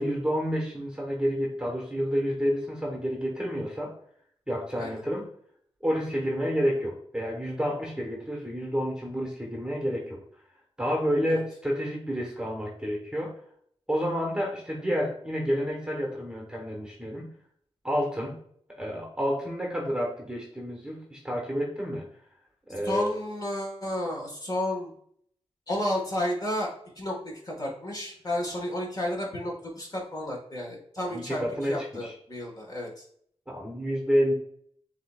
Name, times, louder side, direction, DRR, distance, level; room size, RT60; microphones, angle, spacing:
voice 1, 0.0-3.9 4.5-5.3 5.8-10.2 10.8-13.3 13.9-17.3 17.8-18.3 18.8-22.1 22.7-23.1 31.1-32.1 33.5-34.3, equal, 5° right, 0 dB, 1.1 m, -29 dB
voice 2, 22.8-24.9 25.7-26.7 26.9-33.0, left 1 dB, 35° left, -3 dB, 1.6 m, -32 dB
7.6 x 2.8 x 2.4 m, 0.64 s
wide cardioid pair, 85°, 11 cm